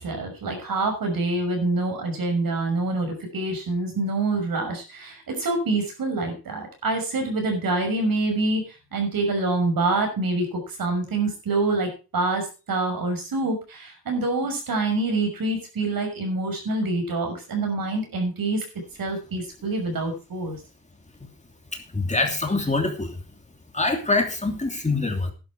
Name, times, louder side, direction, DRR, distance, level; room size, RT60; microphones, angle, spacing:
voice 1, 0.0-18.6 19.0-20.6, right 2 dB, 70° right, 3 dB, 6.2 m, -26 dB
voice 2, 21.7-23.2 23.7-25.3, left 3 dB, 20° left, 3 dB, 3.0 m, -25 dB
11.5 x 11.0 x 4.7 m, 0.32 s
cardioid pair, 90°, 37 cm